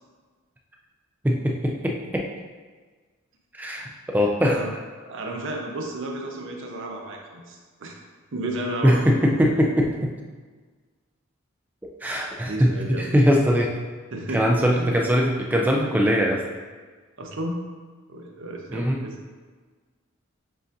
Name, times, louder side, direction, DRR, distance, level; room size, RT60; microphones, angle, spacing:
voice 1, 1.2-2.3 3.6-4.6 8.8-10.1 12.0-13.7 14.3-16.4 18.7-19.0, equal, 10° right, -1 dB, 0.3 m, -21 dB
voice 2, 5.0-7.9 8.3-9.6 12.4-13.1 14.1-14.5 14.7-15.0 17.2-17.5 18.1-19.2, right 1 dB, 60° right, 0 dB, 0.6 m, -33 dB
7.6 x 2.6 x 2.6 m, 1.4 s
head